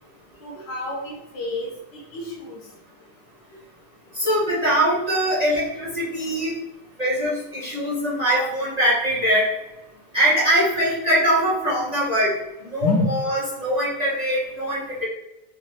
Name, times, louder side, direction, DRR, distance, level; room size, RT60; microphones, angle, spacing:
voice 1, 0.4-2.6 8.3-8.5 12.8-13.1, left 2 dB, 75° left, -2 dB, 1.8 m, -28 dB
voice 2, 4.1-6.6 7.0-9.5 10.1-12.3 12.7-15.1, equal, 25° right, -8 dB, 1.1 m, -22 dB
5.5 x 2.6 x 3.1 m, 0.93 s
omnidirectional pair, 1.9 m